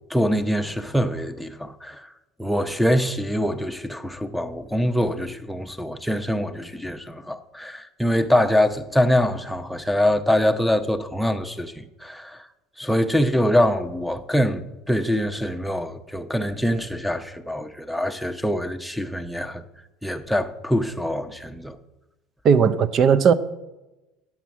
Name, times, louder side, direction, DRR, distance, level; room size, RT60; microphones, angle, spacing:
voice 1, 0.1-2.1 2.4-12.5 12.8-19.6 20.0-21.8, equal, ahead, 0.8 m, -24 dB
voice 2, 22.4-23.3, right 7 dB, 45° right, 0.6 m, -16 dB
8.6 x 6.0 x 7.0 m
supercardioid pair, 90°, 0 cm